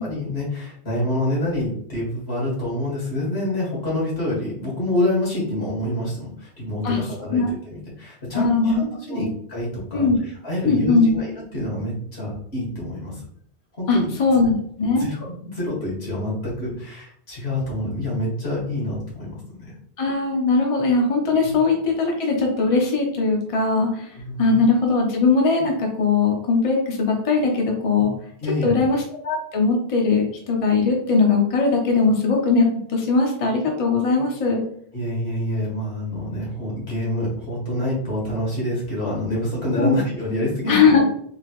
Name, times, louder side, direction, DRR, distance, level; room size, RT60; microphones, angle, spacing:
voice 1, 0.0-10.1 10.4-13.2 13.8-14.1 15.0-19.7 21.4-21.5 24.2-24.6 28.0-28.1 28.4-28.9 34.9-41.0, left 1 dB, 75° left, -5 dB, 1.9 m, -27 dB
voice 2, 8.3-8.8 9.1-9.3 9.9-10.2 10.6-11.2 13.9-15.0 20.0-28.1 28.6-34.6 39.8-40.0 40.7-41.0, left 4 dB, 35° left, 0 dB, 0.7 m, -20 dB
3.8 x 2.8 x 2.9 m, 0.64 s
omnidirectional pair, 1.1 m